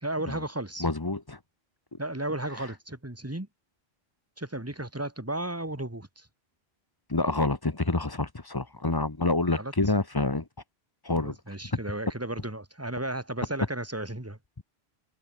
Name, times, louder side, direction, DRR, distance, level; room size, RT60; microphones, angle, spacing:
voice 1, 0.0-0.9 2.0-3.5 4.4-6.3 9.6-9.7 11.1-14.4, right 1 dB, 15° right, 2.1 m, -34 dB
voice 2, 0.8-1.4 7.1-10.4 11.0-11.3, left 2 dB, 20° left, 1.1 m, -27 dB
omnidirectional pair, 1.1 m